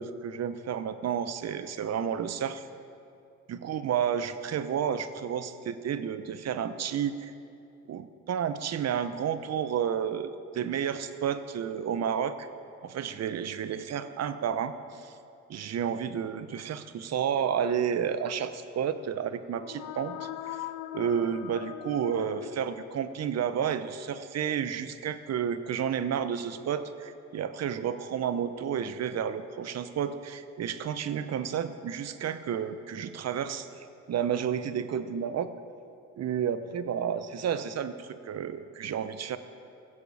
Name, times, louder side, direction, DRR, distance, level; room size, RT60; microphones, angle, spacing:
voice 1, 0.0-2.7 3.5-7.3 7.9-12.5 12.8-15.1 15.5-20.6 20.9-33.7 34.1-35.5 36.2-39.4, right 8 dB, 55° right, 12 dB, 1.0 m, -31 dB
sound 1, 19.5-23.3, left 13 dB, 80° left, 0.6 m, -41 dB
16.5 x 14.5 x 5.0 m, 2.5 s
supercardioid pair, 60°, 30 cm